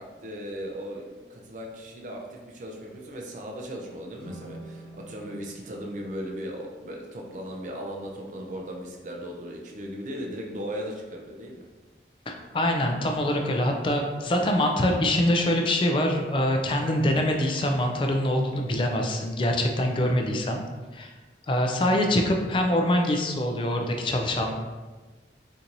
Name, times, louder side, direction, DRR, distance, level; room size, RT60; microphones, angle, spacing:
voice 1, 0.0-11.6, equal, 45° right, 0 dB, 0.4 m, -37 dB
sound 1, 4.1-7.4, right 1 dB, 25° right, 1.0 m, -47 dB
voice 2, 12.3-20.6 20.9-21.1 21.5-24.5, left 1 dB, 30° left, 2 dB, 0.3 m, -24 dB
4.4 x 2.6 x 2.6 m, 1.3 s
head